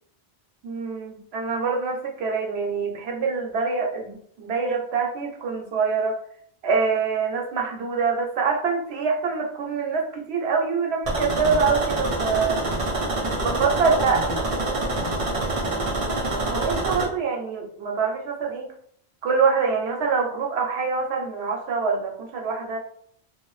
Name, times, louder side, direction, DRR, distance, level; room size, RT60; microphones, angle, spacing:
voice 1, 0.6-6.2 6.6-12.6 13.4-14.2 16.5-18.7 19.2-22.8, right 5 dB, 80° right, 1 dB, 0.9 m, -25 dB
sound 1, 11.0-17.1, right 2 dB, 40° right, 0.5 m, -26 dB
voice 2, 13.4-15.9, left 1 dB, 35° left, -5 dB, 0.7 m, -38 dB
2.6 x 2.2 x 3.0 m, 0.63 s
omnidirectional pair, 1.1 m